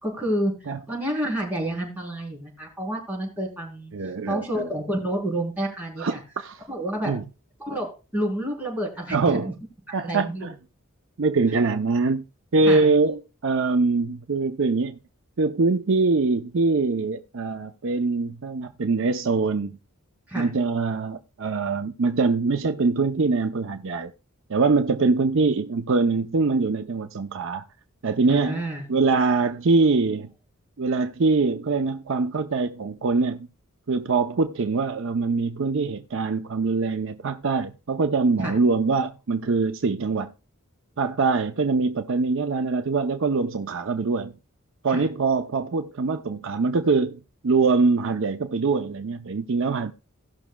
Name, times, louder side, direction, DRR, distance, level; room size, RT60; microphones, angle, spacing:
voice 1, 0.0-6.2 6.7-7.2 7.6-9.5 9.9-10.5 12.6-12.9 20.3-20.5 28.3-28.9 38.4-38.5 44.9-45.0, right 1 dB, 10° right, 3.5 m, -29 dB
voice 2, 3.9-4.7 6.0-6.6 7.1-7.2 9.1-9.5 9.9-10.5 11.2-12.2 12.5-15.0 15.4-19.8 20.3-24.1 24.5-27.6 28.0-28.6 28.9-30.3 30.8-33.4 33.9-40.3 41.0-44.3 44.8-49.9, right 4 dB, 60° right, 0.6 m, -23 dB
17.5 x 6.1 x 2.3 m
head